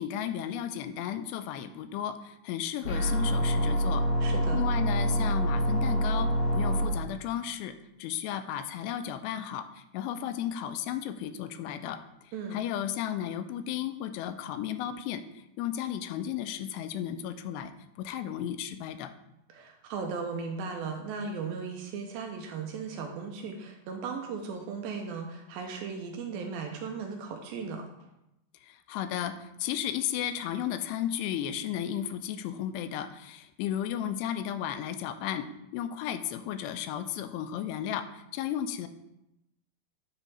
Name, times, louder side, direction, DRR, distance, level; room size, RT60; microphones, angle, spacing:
voice 1, 0.0-4.0 4.5-7.7 8.0-12.0 12.5-15.2 15.6-17.7 18.0-19.1 28.6-35.5 35.7-38.9, left 10 dB, 90° left, 10 dB, 2.6 m, -34 dB
sound 1, 2.8-6.9, equal, 70° left, 1.4 m, -26 dB
voice 2, 4.2-4.6 12.3-12.6 19.5-27.8, right 5 dB, 80° right, 3 dB, 2.2 m, -37 dB
9.5 x 3.5 x 4.1 m, 0.87 s
omnidirectional pair, 4.7 m